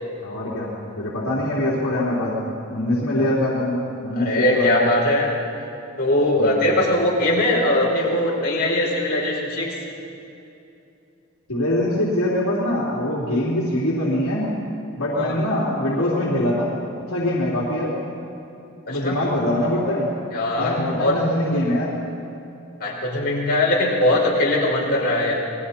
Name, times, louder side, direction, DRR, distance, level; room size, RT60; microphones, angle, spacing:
voice 1, 0.2-4.9 6.4-6.7 11.5-14.5 15.0-16.7 17.1-18.0 18.9-20.1 20.6-22.0, left 1 dB, 75° left, -6 dB, 3.4 m, -23 dB
voice 2, 4.2-5.3 6.0-9.8 15.2-15.3 18.9-19.2 20.3-21.2 22.8-25.3, left 1 dB, 45° left, -5 dB, 5.4 m, -21 dB
28.5 x 21.0 x 4.4 m, 2.8 s
head